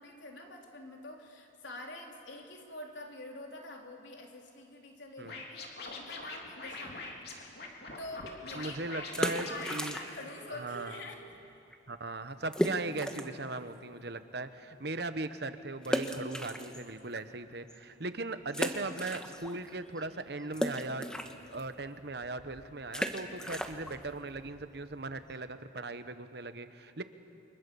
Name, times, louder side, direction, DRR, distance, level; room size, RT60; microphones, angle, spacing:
voice 1, 0.0-7.4 8.0-11.3, left 1 dB, 70° left, 1 dB, 3.6 m, -46 dB
Scratching (performance technique), 5.2-10.7, left 3 dB, 55° left, 3.3 m, -44 dB
voice 2, 8.5-10.0 10.5-11.0 11.9-21.1 21.5-27.0, right 2 dB, 55° right, 10 dB, 1.1 m, -38 dB
sound 1, 9.0-10.4 10.6-10.7 11.3-11.4 11.7-11.8 12.5-13.4 13.9-14.0 15.8-17.2 17.7-17.8 18.5-19.7 20.0-25.5, equal, 5° left, 1.2 m, -36 dB
30.0 x 25.0 x 7.1 m, 2.7 s
head